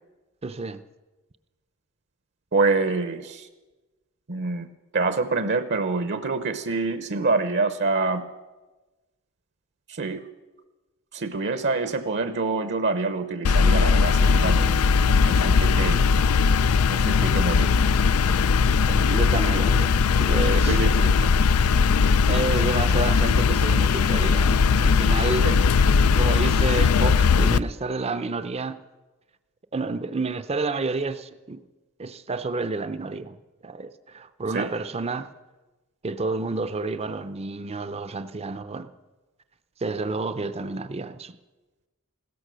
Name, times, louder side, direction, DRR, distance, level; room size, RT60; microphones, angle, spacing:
voice 1, 0.4-0.8 14.6-14.8 18.9-20.8 22.3-25.5 26.1-28.8 29.7-31.6 32.0-33.4 33.6-35.3 36.0-38.9 39.8-41.4, right 3 dB, 30° right, 0.6 m, -30 dB
voice 2, 2.5-3.5 4.3-4.7 4.9-8.2 9.9-10.2 11.1-14.8 15.2-16.0 16.9-17.8 19.5-19.6 20.5-21.3 25.4-25.6 34.5-34.7, right 3 dB, 55° right, 0.8 m, -26 dB
sound 1, 13.4-27.6, left 5 dB, 85° left, 0.4 m, -19 dB
16.0 x 13.5 x 6.2 m
head